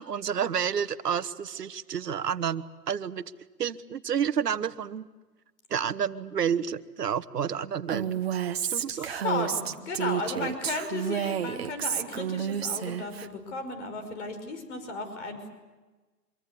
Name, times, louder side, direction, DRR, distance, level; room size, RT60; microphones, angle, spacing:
voice 1, 0.0-3.2 3.6-5.1 5.7-8.2 8.7-9.1, right 8 dB, 70° right, 13 dB, 1.4 m, -30 dB
Female speech woman speaking, 7.9-13.3, right 9 dB, 40° right, 1.2 m, -30 dB
voice 2, 8.8-15.5, left 3 dB, 45° left, 8 dB, 5.6 m, -35 dB
25.5 x 23.5 x 8.3 m, 1.2 s
hypercardioid pair, 165°, 49 cm